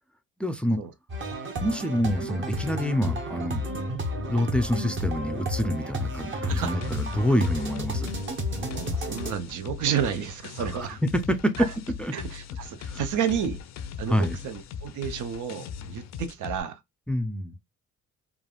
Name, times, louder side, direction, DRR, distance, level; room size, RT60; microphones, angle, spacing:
voice 1, 0.4-0.8 1.6-3.7 4.3-8.1 10.6-10.7 11.1-11.7 12.0-12.1 12.9-13.0 14.1-14.4 17.1-17.5, equal, 5° left, 0.4 m, -26 dB
sound 1, 1.1-9.3, equal, 40° right, 0.9 m, -32 dB
voice 2, 6.4-6.8 8.6-11.0 11.6-11.7 12.1-13.6 14.0-16.8, right 8 dB, 80° right, 0.6 m, -31 dB
sound 2, 6.5-16.6, left 7 dB, 65° left, 0.5 m, -39 dB
3.2 x 2.4 x 2.3 m
cardioid pair, 90°, 30 cm